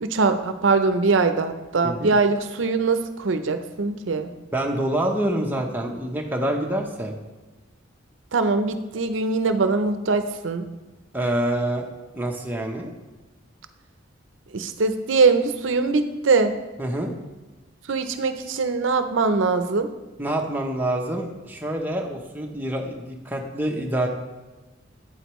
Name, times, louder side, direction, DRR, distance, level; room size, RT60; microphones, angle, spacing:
voice 1, 0.0-4.3 8.3-10.6 14.5-16.5 17.9-19.9, right 4 dB, 75° right, 9 dB, 0.6 m, -22 dB
voice 2, 1.8-2.2 4.5-7.1 11.1-11.9 12.1-12.9 16.8-17.1 20.2-24.1, right 1 dB, 10° right, 1 dB, 0.8 m, -26 dB
8.5 x 7.9 x 3.1 m, 1.2 s
head